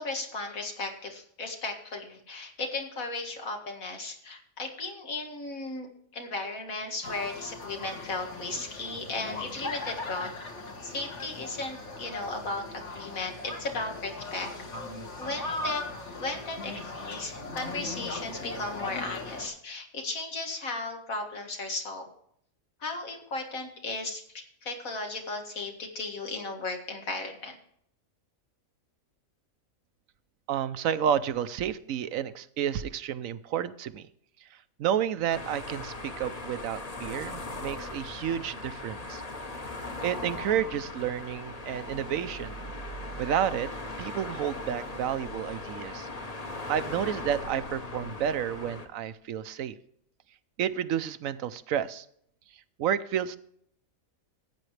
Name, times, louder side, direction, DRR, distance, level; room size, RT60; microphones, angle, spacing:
voice 1, 0.0-10.3 10.8-14.5 15.2-15.8 16.1-22.1 22.8-27.6, left 3 dB, 80° left, 3 dB, 2.3 m, -36 dB
sound 1, 7.0-19.5, left 2 dB, 55° left, 2.1 m, -39 dB
voice 2, 30.5-34.1 34.4-39.2 40.0-42.6 43.2-43.7 44.0-46.1 46.7-49.8 50.6-52.1 52.8-53.4, right 9 dB, 75° right, 14 dB, 1.1 m, -30 dB
sound 2, 35.3-48.9, left 2 dB, 30° left, 1.2 m, -39 dB
15.0 x 8.9 x 3.2 m, 0.68 s
omnidirectional pair, 1.4 m